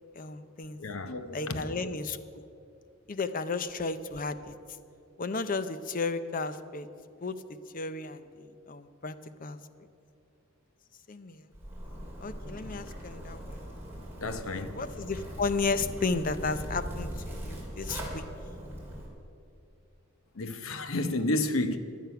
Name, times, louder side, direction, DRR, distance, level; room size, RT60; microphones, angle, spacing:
voice 1, 0.2-0.8 1.3-2.4 3.1-4.6 5.2-6.9 7.2-7.4 7.7-9.1 9.4-9.6 11.1-11.5 12.2-13.6 14.5-18.2, left 4 dB, 40° left, 0.6 m, -33 dB
voice 2, 0.8-1.9 14.2-14.8 20.3-21.8, left 2 dB, 70° left, 0.9 m, -31 dB
Zipper (clothing), 11.5-19.1, equal, 10° right, 3.0 m, -40 dB
16.0 x 11.0 x 5.8 m
head